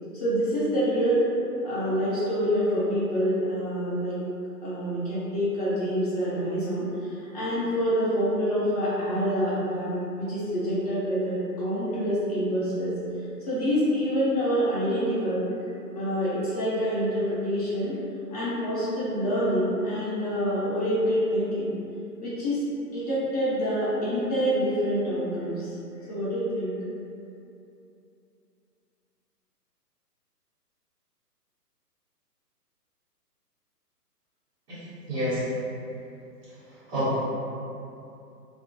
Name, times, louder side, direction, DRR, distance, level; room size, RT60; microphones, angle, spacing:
voice 1, 0.1-1.2 1.6-4.2 4.6-12.9 13.5-15.4 15.9-17.9 18.3-21.7 22.2-22.6 22.9-25.7 26.1-26.7, equal, 25° left, -11 dB, 0.6 m, -26 dB
voice 2, 35.1-35.4 36.9-37.2, equal, 35° right, -18 dB, 1.1 m, -27 dB
2.3 x 2.0 x 2.8 m, 2.7 s
figure-of-eight pair, 130°, 48 cm